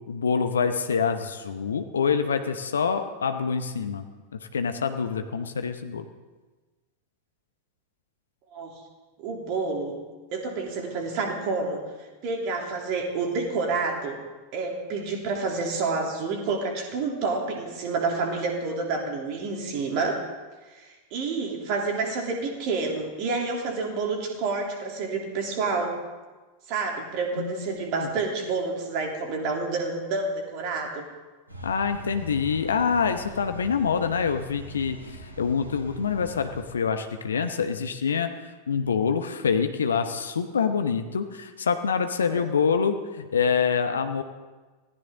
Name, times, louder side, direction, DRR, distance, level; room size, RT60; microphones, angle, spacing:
voice 1, 0.1-4.1 4.3-6.0 27.4-27.7 28.0-28.1 31.6-44.2, left 6 dB, 70° left, 8 dB, 0.9 m, -26 dB
voice 2, 9.2-10.0 10.3-11.8 12.2-14.2 14.5-20.2 20.7-26.0 26.7-31.0 42.3-42.5, right 4 dB, 45° right, 1 dB, 3.2 m, -29 dB
sound 1, 31.5-36.6, equal, 80° right, 3.1 m, -42 dB
24.0 x 15.5 x 3.8 m, 1.3 s
figure-of-eight pair, 90°, 0 cm